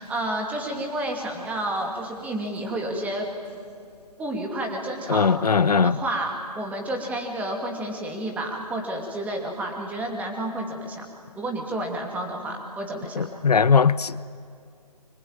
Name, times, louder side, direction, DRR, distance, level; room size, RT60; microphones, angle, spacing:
voice 1, 0.0-3.3 4.2-5.3 5.8-11.0 11.4-13.3, right 1 dB, 5° right, 2.7 m, -30 dB
voice 2, 5.1-6.0 13.2-14.2, left 5 dB, 75° left, 0.7 m, -20 dB
25.0 x 22.5 x 8.9 m
figure-of-eight pair, 145°, 20 cm